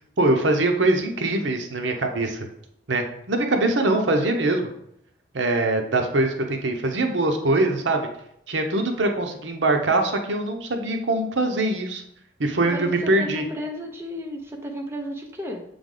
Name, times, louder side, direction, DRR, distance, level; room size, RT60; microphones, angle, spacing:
voice 1, 0.2-2.5 2.9-4.7 5.3-8.1 8.5-12.0 12.4-13.4, right 2 dB, 80° right, 4 dB, 0.8 m, -23 dB
voice 2, 12.7-15.6, equal, 15° right, 1 dB, 0.7 m, -33 dB
7.2 x 3.4 x 3.8 m, 0.75 s
head